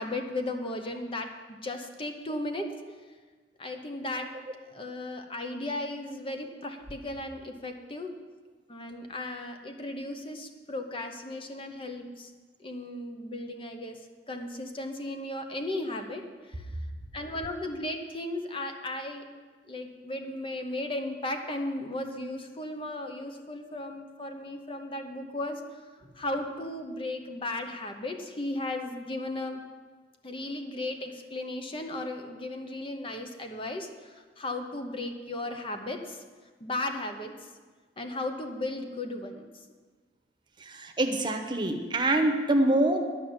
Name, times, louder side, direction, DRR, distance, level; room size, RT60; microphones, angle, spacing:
voice 1, 0.0-2.7 3.6-4.3 4.7-8.1 8.7-12.3 12.6-14.0 14.3-16.8 17.1-19.3 19.7-25.8 26.2-29.6 30.2-36.2 36.6-37.5 38.0-39.6, left 2 dB, 30° left, 5 dB, 0.9 m, -35 dB
voice 2, 40.6-43.0, right 1 dB, 25° right, 4 dB, 1.0 m, -25 dB
10.0 x 6.0 x 8.7 m, 1.4 s
head